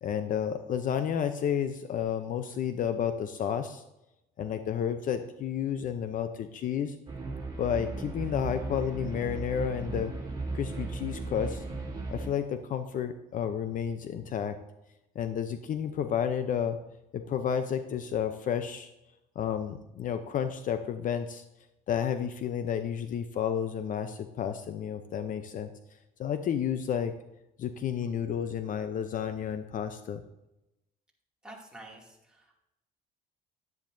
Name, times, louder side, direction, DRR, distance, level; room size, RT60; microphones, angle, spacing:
voice 1, 0.0-3.8 4.4-7.0 7.6-10.1 10.5-11.6 12.1-14.6 15.2-16.8 17.1-18.9 19.4-21.4 21.9-25.7 26.2-27.1 27.6-30.2, left 8 dB, 50° left, 9 dB, 0.6 m, -31 dB
sound 1, 7.1-12.3, right 3 dB, 25° right, 2.4 m, -36 dB
voice 2, 31.4-32.6, right 1 dB, 5° right, -3 dB, 2.4 m, -49 dB
10.5 x 10.0 x 2.7 m, 0.91 s
cardioid pair, 110°, 17 cm